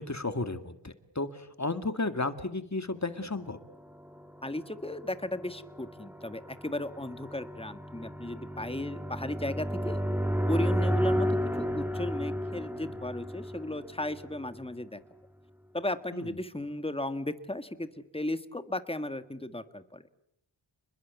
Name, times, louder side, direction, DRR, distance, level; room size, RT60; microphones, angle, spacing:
voice 1, 0.0-3.6 16.1-16.3, left 2 dB, 40° left, 10 dB, 2.2 m, -33 dB
sound 1, 3.8-14.6, equal, 5° right, 2.6 m, -33 dB
voice 2, 4.4-10.0 10.5-15.0 15.7-20.0, left 1 dB, 10° left, 11 dB, 1.7 m, -35 dB
29.5 x 21.5 x 8.3 m, 0.74 s
wide cardioid pair, 50°, 45 cm